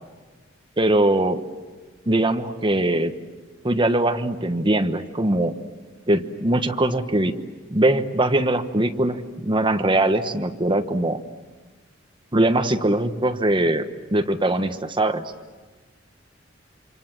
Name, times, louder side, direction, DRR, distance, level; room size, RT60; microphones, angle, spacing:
voice 1, 0.8-1.4 2.1-3.1 3.6-5.5 6.1-7.3 7.7-11.2 12.3-13.8 14.1-15.2, right 1 dB, 25° right, 7 dB, 1.2 m, -21 dB
28.0 x 26.5 x 7.5 m, 1.3 s
head